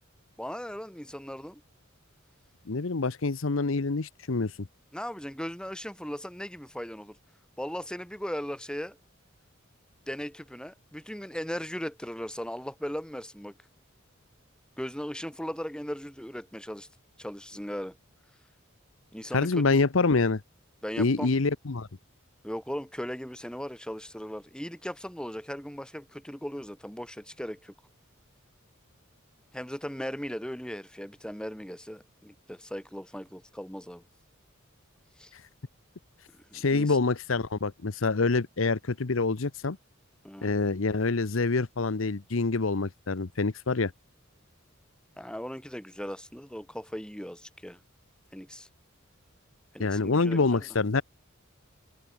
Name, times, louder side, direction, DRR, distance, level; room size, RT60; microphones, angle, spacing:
voice 1, 0.4-1.6 4.9-7.2 7.6-9.0 10.1-13.5 14.8-16.9 17.2-18.0 19.1-19.8 20.8-21.3 22.4-27.7 29.5-34.0 35.2-35.3 36.3-37.0 40.2-40.5 45.2-47.8 48.3-48.7 49.7-50.6, equal, 5° left, 7.0 m, -38 dB
voice 2, 2.7-4.5 19.3-20.4 21.0-21.9 35.3-35.4 36.5-39.8 40.4-43.9 49.8-51.0, left 3 dB, 70° left, 0.9 m, -26 dB
head